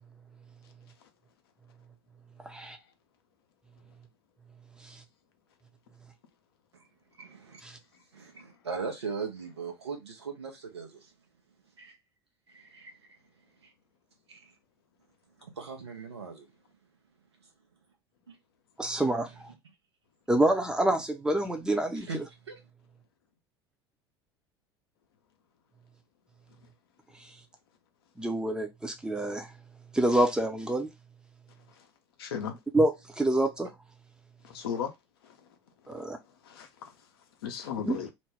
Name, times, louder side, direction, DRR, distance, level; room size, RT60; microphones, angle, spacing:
voice 1, 2.4-2.8 4.8-5.0 7.6-7.8 18.8-19.5 20.3-22.2 28.2-29.5 29.9-30.9 32.7-33.7 35.9-36.2 37.9-38.0, right 1 dB, 5° right, 0.6 m, -27 dB
voice 2, 7.1-7.6 8.1-11.1 11.8-12.0 12.5-13.2 13.6-13.7 14.3-14.5 15.4-16.5 18.3-18.4 21.9-22.2 22.5-22.6, right 5 dB, 75° right, 0.8 m, -39 dB
voice 3, 32.2-32.6 34.4-34.9 35.2-35.6 35.8-37.1 37.4-38.1, left 7 dB, 65° left, 0.6 m, -37 dB
2.6 x 2.1 x 3.3 m
figure-of-eight pair, 70°, 14 cm